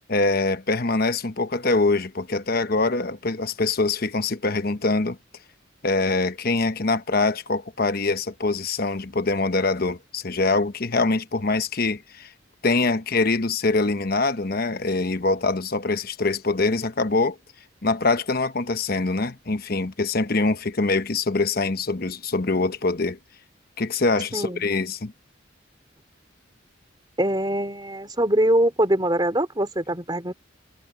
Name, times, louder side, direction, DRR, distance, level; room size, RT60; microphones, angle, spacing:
voice 1, 0.1-5.2 5.8-12.3 12.6-17.4 17.8-23.2 23.8-25.1, left 3 dB, 50° left, 1.1 m, -24 dB
voice 2, 27.2-30.3, right 1 dB, 20° right, 3.1 m, -23 dB
head